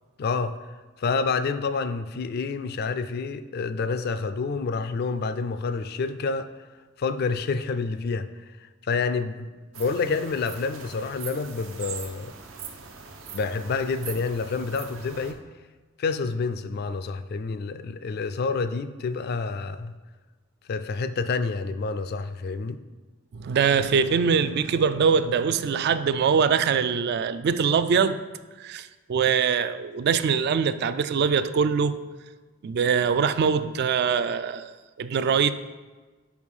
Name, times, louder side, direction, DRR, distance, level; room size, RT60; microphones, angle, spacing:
voice 1, 0.2-0.6 1.0-6.5 7.0-8.3 8.9-9.5 9.8-12.3 13.3-15.4 16.0-19.9 20.7-22.8, left 4 dB, 55° left, 0.3 m, -28 dB
sound 1, 9.7-15.3, right 6 dB, 80° right, 0.7 m, -41 dB
voice 2, 23.3-28.2 28.6-32.0 32.6-35.5, right 6 dB, 55° right, 0.3 m, -23 dB
5.2 x 4.8 x 5.4 m
head